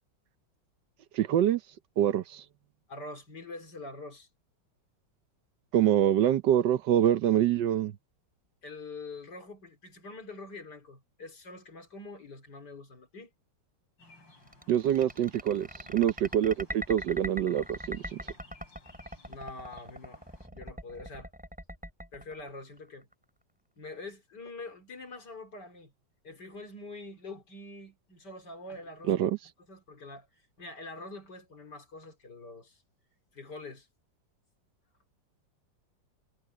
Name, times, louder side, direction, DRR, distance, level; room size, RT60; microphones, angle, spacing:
voice 1, 1.1-1.6 2.0-2.4 5.7-7.9 14.7-15.7 15.9-18.2 29.1-29.4, right 10 dB, 75° right, 1.4 m, -25 dB
voice 2, 2.9-4.3 8.6-13.3 19.3-20.2 20.5-21.3 22.1-23.1 23.8-25.9 26.2-29.3 29.7-30.3 30.6-32.8 33.3-33.9, left 2 dB, 65° left, 4.0 m, -45 dB
sound 1, 14.0-20.5, left 2 dB, 85° left, 8.9 m, -59 dB
sound 2, 14.5-23.1, equal, 5° right, 6.1 m, -41 dB
omnidirectional pair, 2.0 m